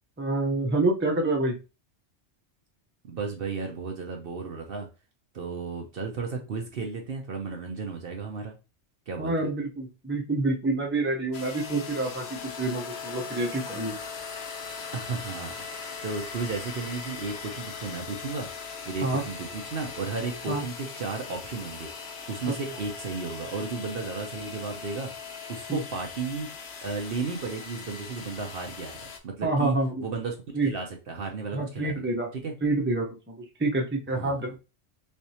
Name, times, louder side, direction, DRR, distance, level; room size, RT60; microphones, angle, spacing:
voice 1, 0.2-1.5 9.2-13.9 19.0-19.2 20.5-20.6 25.7-25.8 29.4-30.0 30.5-30.7 31.5-32.3 32.6-34.6, right 2 dB, 10° right, 0 dB, 0.7 m, -27 dB
voice 2, 3.0-4.9 5.3-8.6 9.1-9.5 14.9-18.5 18.8-21.9 22.3-26.5 26.8-29.7 30.0-30.4 30.6-32.0 32.3-32.5 34.1-34.4, right 4 dB, 55° right, 2 dB, 0.9 m, -34 dB
sound 1, 11.3-29.2, left 5 dB, 65° left, 0.9 m, -40 dB
3.6 x 3.4 x 2.8 m, 0.30 s
omnidirectional pair, 1.2 m